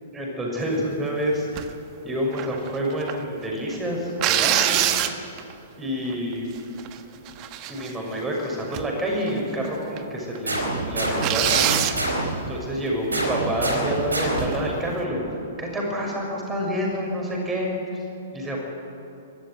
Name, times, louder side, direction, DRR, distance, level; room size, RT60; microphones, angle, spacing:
voice 1, 0.1-1.5 2.0-4.8 5.8-6.5 7.7-11.7 12.5-15.2 15.6-18.0 18.3-18.6, equal, 15° right, -1 dB, 6.2 m, -28 dB
sound 1, 1.6-1.8 2.3-3.2 4.2-5.5 6.1-6.2 6.6-6.9 7.3-8.2 8.7-9.0 9.3-9.4 10.0-10.1 10.3-10.4 11.2-12.0 14.3-14.7, right 11 dB, 35° right, 1.3 m, -24 dB
sound 2, 10.5-12.5 13.1-14.7, right 2 dB, 80° right, 4.6 m, -26 dB
23.5 x 13.5 x 10.0 m, 2.8 s
figure-of-eight pair, 110°, 0 cm